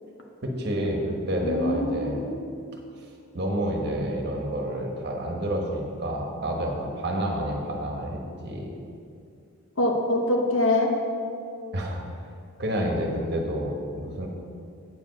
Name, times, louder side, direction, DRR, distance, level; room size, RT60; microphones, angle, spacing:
voice 1, 0.4-2.3 3.0-8.7 11.7-12.0 12.6-14.3, equal, 50° right, 1 dB, 1.3 m, -29 dB
voice 2, 1.4-2.3 9.8-10.9, left 1 dB, 60° left, 1 dB, 1.2 m, -24 dB
8.5 x 5.1 x 6.4 m, 2.4 s
head